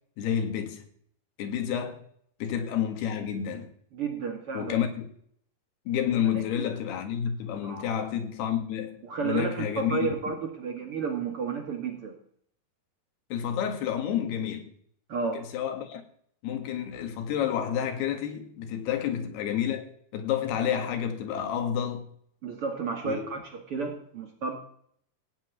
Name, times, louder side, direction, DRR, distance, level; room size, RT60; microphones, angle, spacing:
voice 1, 0.2-0.9 1.4-2.0 2.4-3.7 4.5-5.1 5.9-10.1 13.3-14.7 15.3-16.0 16.4-22.1 23.0-23.3, left 9 dB, 90° left, 3.8 m, -30 dB
voice 2, 3.9-4.8 6.3-6.7 7.6-7.9 9.0-12.1 15.1-15.4 22.4-24.6, right 5 dB, 45° right, 2.2 m, -32 dB
16.0 x 5.6 x 9.3 m
omnidirectional pair, 4.5 m